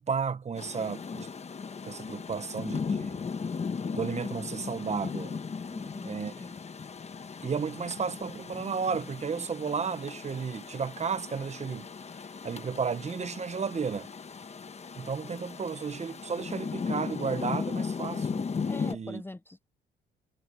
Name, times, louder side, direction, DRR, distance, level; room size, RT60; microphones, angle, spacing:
voice 1, 0.0-1.3 1.8-3.3 3.9-5.4 6.0-6.3 7.4-11.9 12.4-14.1 15.0-19.2, right 5 dB, 35° right, 1.0 m, -33 dB
Rain, 0.5-18.9, left 5 dB, 35° left, 1.2 m, -37 dB
voice 2, 5.7-6.5 18.7-19.7, left 2 dB, 10° left, 0.7 m, -43 dB
cardioid pair, 90°, 20 cm